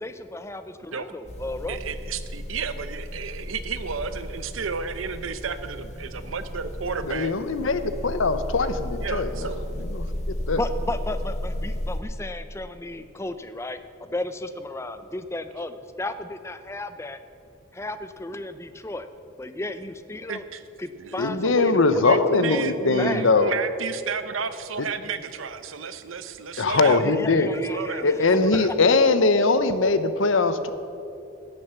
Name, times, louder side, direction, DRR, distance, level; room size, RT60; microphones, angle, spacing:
voice 1, 0.0-1.8 10.6-17.2 17.7-19.1 19.4-20.4 20.8-23.2 26.8-28.4 28.7-29.0, left 2 dB, 15° left, 11 dB, 0.5 m, -33 dB
sound 1, 1.3-12.0, left 1 dB, 35° left, 1.5 m, -34 dB
voice 2, 1.7-7.3 9.0-9.7 20.3-20.6 21.0-27.0 27.7-28.0 28.4-28.7, right 5 dB, 90° right, 11 dB, 0.8 m, -32 dB
voice 3, 7.0-9.3 9.8-10.6 21.2-23.5 24.8-24.9 26.6-27.5 28.0-30.7, left 3 dB, 80° left, 11 dB, 0.8 m, -21 dB
16.5 x 7.0 x 6.9 m, 2.7 s
head